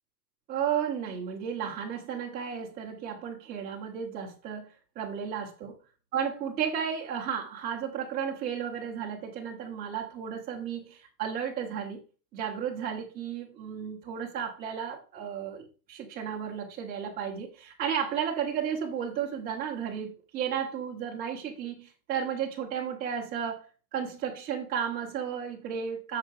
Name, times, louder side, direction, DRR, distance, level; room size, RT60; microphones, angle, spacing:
voice 1, 0.5-4.7 5.0-5.7 6.1-12.0 12.3-23.6 23.9-26.2, right 8 dB, 20° right, -2 dB, 1.9 m, -33 dB
8.1 x 6.7 x 4.8 m, 0.35 s
supercardioid pair, 170°, 49 cm